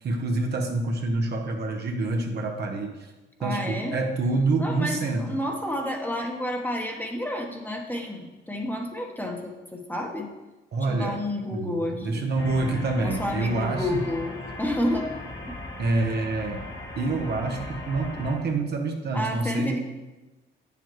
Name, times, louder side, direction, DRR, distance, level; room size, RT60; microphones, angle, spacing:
voice 1, 0.0-3.1 3.4-5.4 10.7-11.2 11.5-14.1 15.8-16.6 17.0-19.8, right 2 dB, 55° right, 2 dB, 1.1 m, -27 dB
voice 2, 3.4-4.0 4.6-10.3 10.9-12.3 13.0-15.1 15.5-15.6 19.1-19.8, left 1 dB, 10° left, 1 dB, 1.2 m, -30 dB
sound 1, 12.4-18.4, left 2 dB, 60° left, 2.1 m, -38 dB
8.9 x 7.0 x 3.1 m, 1.1 s
cardioid pair, 90°, 20 cm